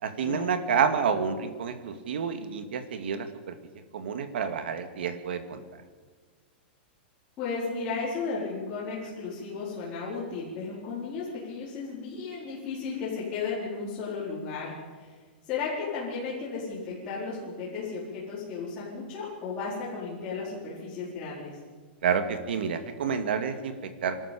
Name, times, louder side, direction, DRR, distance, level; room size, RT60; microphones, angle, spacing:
voice 1, 0.0-3.5 3.9-5.6 22.0-24.3, right 6 dB, 70° right, 9 dB, 2.4 m, -29 dB
voice 2, 7.4-15.1 15.5-21.6, left 4 dB, 20° left, -9 dB, 4.6 m, -34 dB
25.0 x 13.0 x 8.6 m, 1.4 s
supercardioid pair, 175°, 6 cm